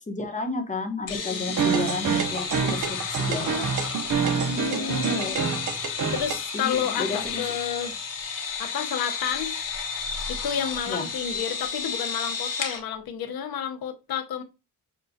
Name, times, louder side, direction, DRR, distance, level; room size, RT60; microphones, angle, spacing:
voice 1, 0.1-3.7 4.8-5.5 6.5-7.4 10.9-11.1, left 3 dB, 20° left, 0.9 m, -32 dB
voice 2, 1.1-1.4 4.3-5.3 6.1-8.0 8.6-9.5 10.3-14.4, left 8 dB, 85° left, 0.7 m, -31 dB
sound 1, 1.1-12.8, left 5 dB, 60° left, 1.0 m, -32 dB
sound 2, 1.5-6.4, right 6 dB, 60° right, 0.6 m, -27 dB
5.9 x 2.2 x 2.6 m
cardioid pair, 100°, 36 cm